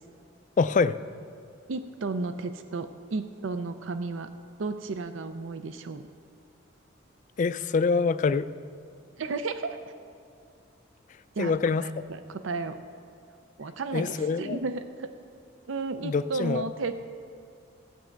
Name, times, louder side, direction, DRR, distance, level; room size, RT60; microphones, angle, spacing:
voice 1, 0.6-1.0 7.4-8.5 11.4-12.0 13.9-14.6 16.0-16.6, left 4 dB, 40° left, 13 dB, 0.3 m, -25 dB
voice 2, 1.7-4.3 4.6-6.0 9.2-9.9 11.4-11.5 11.8-12.8 13.6-15.1 15.7-17.0, right 3 dB, 75° right, 9 dB, 0.5 m, -33 dB
16.0 x 8.7 x 4.6 m, 2.4 s
head